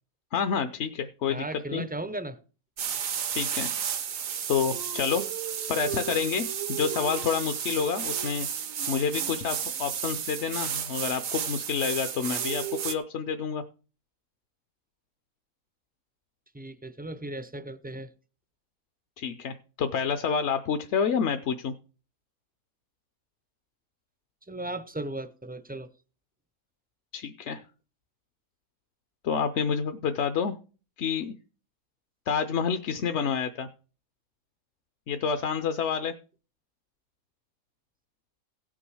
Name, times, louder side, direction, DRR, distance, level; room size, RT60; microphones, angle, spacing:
voice 1, 0.3-1.8 3.3-3.7 4.5-8.5 8.9-13.6 19.2-21.7 27.1-27.6 29.2-30.5 31.0-31.3 32.3-33.7 35.1-36.1, left 6 dB, 60° left, 1.0 m, -29 dB
voice 2, 1.3-2.4 16.5-18.1 24.5-25.9, right 2 dB, 10° right, 0.4 m, -36 dB
sound 1, 2.8-12.9, right 8 dB, 75° right, 1.3 m, -32 dB
16.5 x 6.1 x 4.8 m
omnidirectional pair, 1.4 m